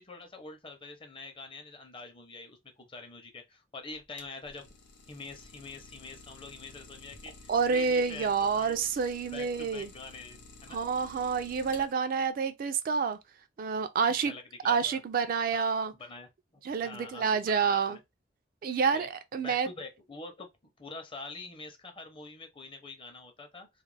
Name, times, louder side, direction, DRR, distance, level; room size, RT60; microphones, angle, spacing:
voice 1, 0.0-4.7 5.1-8.8 9.3-10.9 14.1-15.0 15.5-15.7 16.0-18.0 18.9-19.1 19.4-20.5 20.8-23.7, left 3 dB, 30° left, 0.6 m, -45 dB
Idling, 3.9-12.2, left 3 dB, 70° left, 0.7 m, -52 dB
voice 2, 7.5-9.9 10.7-13.2 13.6-14.3 14.6-15.9 16.6-18.0 18.6-19.7, right 5 dB, 50° right, 0.3 m, -28 dB
2.3 x 2.1 x 3.1 m
head